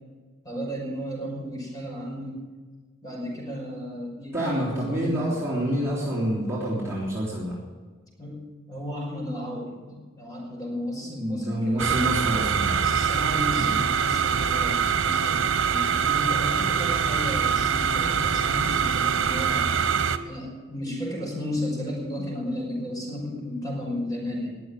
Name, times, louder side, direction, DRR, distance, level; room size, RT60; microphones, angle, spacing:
voice 1, 0.4-2.4 3.0-5.3 8.2-8.4 8.7-12.0 12.8-19.7 20.2-24.5, left 1 dB, 20° left, -2 dB, 5.5 m, -34 dB
voice 2, 4.3-7.6 11.0-12.8 13.7-13.8, equal, 15° right, -7 dB, 3.4 m, -27 dB
sound 1, 11.8-20.2, right 7 dB, 85° right, 1.0 m, -24 dB
21.0 x 7.2 x 8.3 m, 1.4 s
head